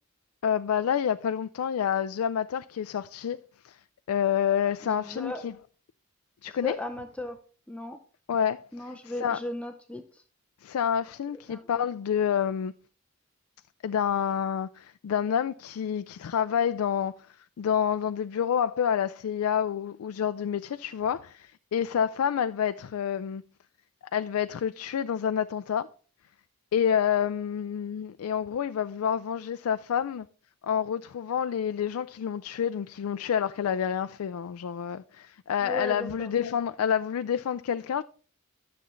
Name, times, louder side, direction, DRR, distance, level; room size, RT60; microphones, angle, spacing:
voice 1, 0.4-3.4 3.6-3.8 4.1-5.5 6.4-6.8 8.3-9.4 10.6-12.7 13.8-17.1 17.6-23.4 24.1-25.9 26.7-30.3 30.6-38.0, left 8 dB, 75° left, 0.3 m, -28 dB
voice 2, 4.8-5.4 6.6-7.4 7.7-8.0 8.7-10.2 11.5-11.8 35.6-36.3, left 1 dB, 5° left, 0.5 m, -36 dB
12.5 x 6.9 x 3.1 m
head